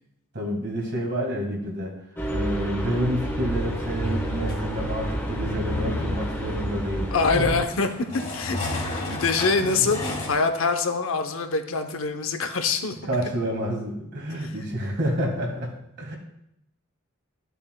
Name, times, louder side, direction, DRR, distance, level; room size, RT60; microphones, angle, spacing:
voice 1, 0.3-1.9 2.3-7.4 9.6-9.9 13.1-16.2, equal, 55° right, 0 dB, 1.7 m, -29 dB
sound 1, 2.2-7.6, equal, 10° left, 1.3 m, -29 dB
sound 2, 3.5-10.3, left 2 dB, 35° left, 2.1 m, -35 dB
voice 2, 7.1-7.9 8.3-12.9 14.4-14.5, left 4 dB, 70° left, 7 dB, 0.8 m, -25 dB
12.5 x 6.9 x 2.2 m, 0.79 s
head